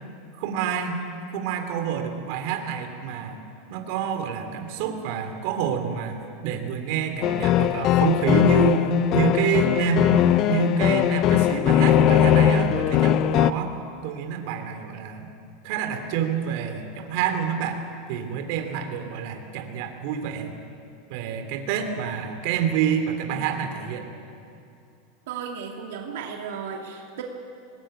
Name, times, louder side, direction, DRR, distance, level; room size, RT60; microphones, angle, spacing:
voice 1, 0.4-1.0 1.3-3.4 3.7-6.2 6.4-10.1 10.5-13.8 14.0-15.3 15.6-17.8 18.1-20.5 21.1-24.1, right 8 dB, 60° right, 5 dB, 2.9 m, -27 dB
sound 1, 7.2-13.5, left 11 dB, 40° left, 0.7 m, -20 dB
voice 2, 25.3-27.2, right 6 dB, 80° right, 1 dB, 2.5 m, -34 dB
21.0 x 20.0 x 8.9 m, 2.6 s
supercardioid pair, 140°, 0 cm